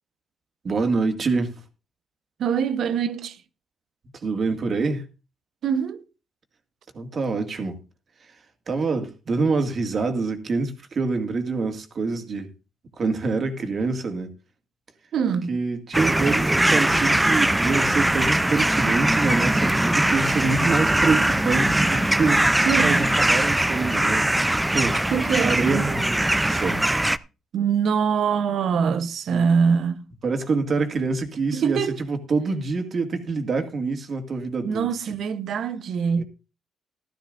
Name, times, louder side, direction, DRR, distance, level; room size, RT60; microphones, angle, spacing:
voice 1, 0.6-1.5 4.2-5.1 6.9-7.8 8.7-12.5 13.0-14.3 15.5-24.3 24.7-25.1 25.4-26.8 29.3-29.5 30.2-31.8 32.1-34.9 36.2-36.3, right 4 dB, 45° right, 2.1 m, -26 dB
voice 2, 2.4-3.4 5.6-6.0 15.1-15.6 22.7-23.1 25.1-25.9 27.5-30.0 31.5-32.0 34.6-36.2, right 6 dB, 65° right, 0.9 m, -23 dB
sound 1, 15.9-27.2, right 1 dB, 10° right, 0.5 m, -21 dB
16.0 x 12.5 x 2.6 m
cardioid pair, 90°, 0 cm